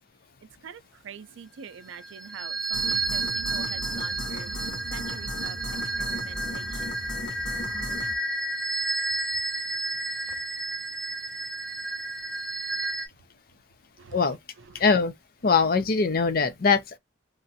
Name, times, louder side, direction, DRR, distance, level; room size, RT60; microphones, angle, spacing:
voice 1, 0.6-4.5 4.9-5.6 6.0-6.8 14.0-14.2, right 7 dB, 75° right, 0.4 m, -44 dB
sound 1, 1.9-13.1, right 2 dB, 5° left, 0.6 m, -31 dB
sound 2, 2.7-8.2, left 1 dB, 70° left, 0.9 m, -37 dB
voice 2, 14.7-15.1 15.4-17.0, left 5 dB, 50° left, 0.5 m, -22 dB
3.0 x 2.4 x 2.7 m
head